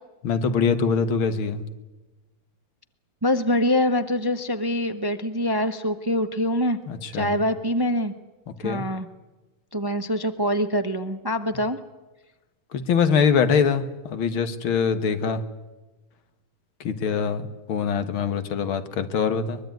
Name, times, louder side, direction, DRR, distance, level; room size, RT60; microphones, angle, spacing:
voice 1, 0.2-1.6 6.9-7.4 8.5-8.9 12.7-15.4 16.8-19.6, left 6 dB, 85° left, 10 dB, 2.3 m, -23 dB
voice 2, 3.2-6.8 7.1-8.1 8.6-9.1 9.7-11.8, left 1 dB, 20° right, 9 dB, 0.7 m, -24 dB
23.0 x 22.5 x 9.3 m, 1.1 s
omnidirectional pair, 2.2 m